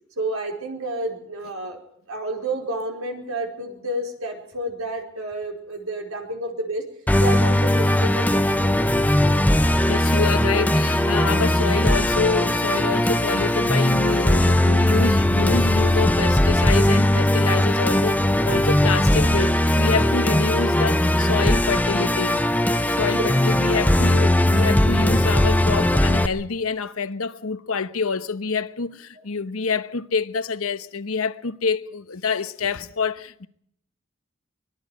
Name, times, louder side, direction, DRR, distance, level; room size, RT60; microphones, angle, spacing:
voice 1, 0.2-1.8 2.1-6.8 7.2-8.7 23.0-23.3 32.6-32.7, right 1 dB, 90° right, 4.8 m, -30 dB
Musical instrument, 7.1-26.3, left 1 dB, 10° left, 0.8 m, -19 dB
voice 2, 9.9-22.4 22.9-33.5, left 5 dB, 85° left, 1.0 m, -27 dB
24.0 x 21.0 x 5.1 m
head